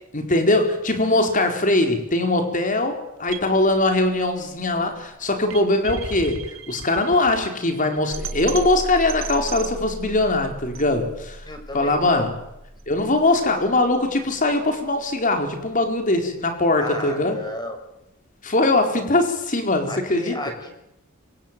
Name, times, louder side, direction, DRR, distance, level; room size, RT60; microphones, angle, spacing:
voice 1, 0.1-11.4 11.7-12.3 12.9-17.4 18.4-20.3, left 2 dB, 40° left, 5 dB, 4.6 m, -21 dB
sound 1, 3.3-15.3, right 3 dB, 80° right, 3.6 m, -37 dB
voice 2, 11.4-12.3 16.8-17.8 19.9-20.7, left 1 dB, 20° left, 6 dB, 5.8 m, -33 dB
25.5 x 24.5 x 9.1 m, 0.86 s
head